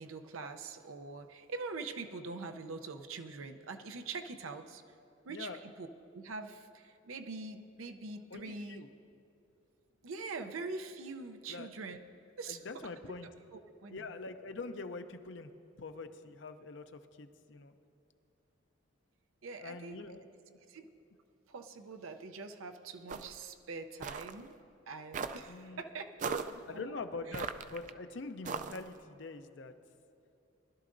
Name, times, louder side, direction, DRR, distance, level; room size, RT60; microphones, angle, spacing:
voice 1, 0.0-4.8 5.2-5.9 6.1-8.8 10.0-12.0 12.4-12.6 13.2-14.2 19.4-20.0 20.7-20.9 21.5-24.6 24.9-27.0 27.3-27.5, right 4 dB, 90° right, 7 dB, 0.6 m, -44 dB
voice 2, 8.3-8.9 11.5-11.7 12.5-13.3 13.9-15.5 15.8-17.7 19.6-20.3 25.5-25.8 26.7-29.7, left 3 dB, 60° left, 8 dB, 0.6 m, -44 dB
sound 1, 23.1-23.4 24.0-24.3 25.1-25.5 26.2-26.6 27.3-27.9 28.4-28.9, right 5 dB, 40° right, 0.3 m, -38 dB
20.5 x 12.0 x 2.6 m, 2.7 s
head